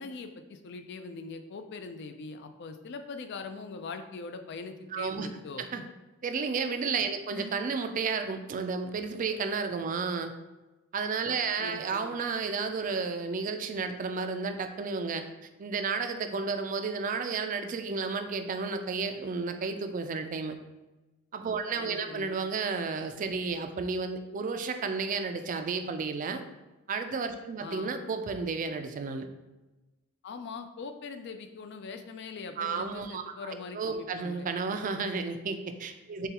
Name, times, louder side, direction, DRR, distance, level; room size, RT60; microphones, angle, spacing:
voice 1, 0.0-5.9 7.3-7.5 10.1-10.2 11.6-12.1 21.8-22.4 27.6-28.0 30.2-34.5, left 4 dB, 55° left, 8 dB, 0.4 m, -42 dB
voice 2, 4.9-5.3 5.6-5.8 6.2-10.3 10.9-15.3 15.6-20.6 21.3-26.4 26.9-29.3 32.6-36.3, right 4 dB, 40° right, 7 dB, 0.3 m, -32 dB
6.6 x 2.3 x 2.9 m, 1.1 s
head